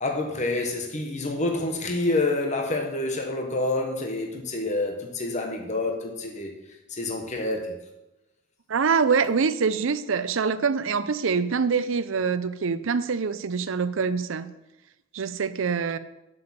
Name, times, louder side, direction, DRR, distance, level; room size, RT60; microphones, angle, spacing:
voice 1, 0.0-6.5 6.9-7.7, left 2 dB, 35° left, 2 dB, 1.2 m, -27 dB
voice 2, 8.7-14.5 15.1-16.0, right 5 dB, 65° right, 14 dB, 0.5 m, -25 dB
7.8 x 7.0 x 7.2 m, 0.96 s
head